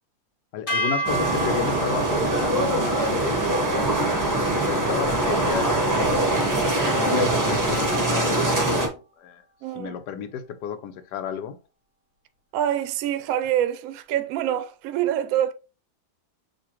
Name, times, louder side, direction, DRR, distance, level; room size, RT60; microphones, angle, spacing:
voice 1, 0.5-4.1 4.4-5.9 6.8-9.4 9.7-11.6, left 8 dB, 90° left, 1.2 m, -33 dB
sound 1, 0.7-7.0, right 2 dB, 35° left, 1.1 m, -33 dB
sound 2, 1.0-8.9, right 1 dB, 15° right, 0.6 m, -23 dB
voice 2, 9.6-10.0 12.5-15.5, right 11 dB, 70° right, 0.9 m, -25 dB
6.7 x 2.5 x 2.9 m
omnidirectional pair, 1.8 m